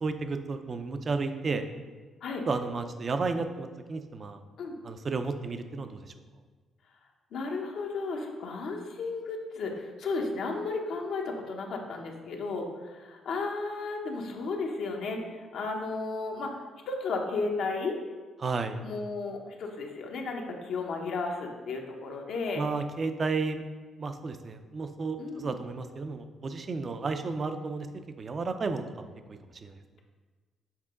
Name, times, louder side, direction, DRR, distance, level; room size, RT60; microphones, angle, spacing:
voice 1, 0.0-1.6 2.5-4.4 4.8-6.0 18.4-18.8 22.6-23.6 24.0-27.9 28.2-29.1 29.6-29.7, right 4 dB, 40° right, 8 dB, 0.5 m, -32 dB
voice 2, 7.3-16.6 16.9-18.0 18.8-22.7 25.2-25.5, left 3 dB, 70° left, 1 dB, 0.9 m, -34 dB
7.3 x 3.7 x 3.7 m, 1.4 s
cardioid pair, 90°, 0 cm